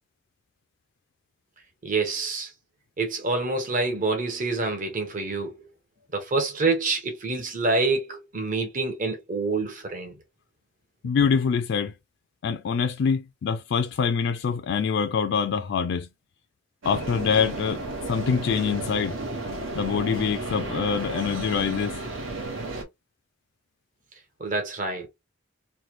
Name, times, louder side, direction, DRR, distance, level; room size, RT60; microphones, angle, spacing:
voice 1, 1.8-2.5 3.0-5.5 6.1-10.1 24.4-25.1, right 3 dB, 40° right, 1.0 m, -27 dB
voice 2, 11.0-11.9 12.4-16.1 16.9-19.2 19.7-22.0, left 6 dB, 60° left, 0.3 m, -25 dB
sound 1, 16.8-22.8, right 2 dB, 75° right, 1.1 m, -33 dB
3.2 x 2.2 x 2.9 m
head